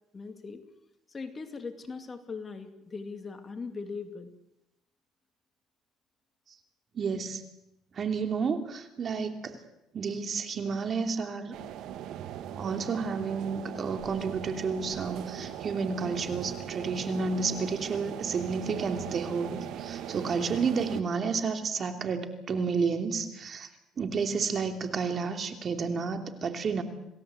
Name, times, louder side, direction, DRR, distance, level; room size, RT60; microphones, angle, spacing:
voice 1, 0.1-0.6 1.1-4.3, left 4 dB, 25° left, 7 dB, 2.6 m, -40 dB
voice 2, 6.9-7.4 7.9-9.6 9.9-11.6 12.6-23.7 24.0-26.8, right 5 dB, 40° right, 6 dB, 2.9 m, -31 dB
sound 1, 11.5-21.0, right 10 dB, 70° right, 1.6 m, -39 dB
28.0 x 17.5 x 8.0 m, 0.90 s
cardioid pair, 110°, 0 cm